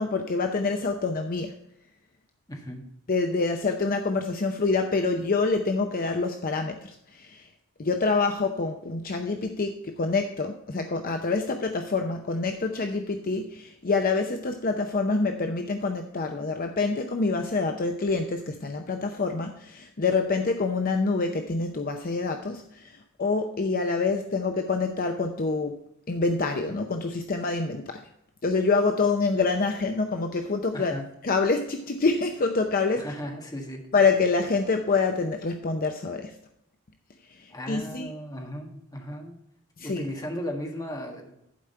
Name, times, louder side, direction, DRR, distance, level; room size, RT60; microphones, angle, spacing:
voice 1, 0.0-1.5 3.1-7.5 7.8-25.7 26.1-28.0 28.4-31.0 31.2-33.1 33.9-36.4 37.3-38.1 39.8-40.0, left 4 dB, 45° left, 5 dB, 0.6 m, -26 dB
voice 2, 2.5-2.9 30.7-31.1 33.0-33.9 37.5-39.3 39.8-41.3, equal, 20° left, 1 dB, 1.6 m, -36 dB
11.5 x 5.0 x 4.4 m, 0.80 s
head